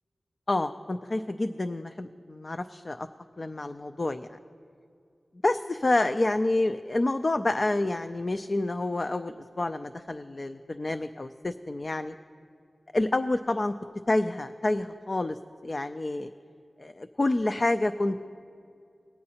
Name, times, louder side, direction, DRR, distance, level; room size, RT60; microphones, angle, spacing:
voice 1, 0.5-3.1 3.4-4.4 5.4-12.1 12.9-13.7 14.1-16.3 16.8-18.2, left 2 dB, 45° left, 9 dB, 0.3 m, -28 dB
20.0 x 8.6 x 2.8 m, 2.4 s
wide cardioid pair, 60°, 0 cm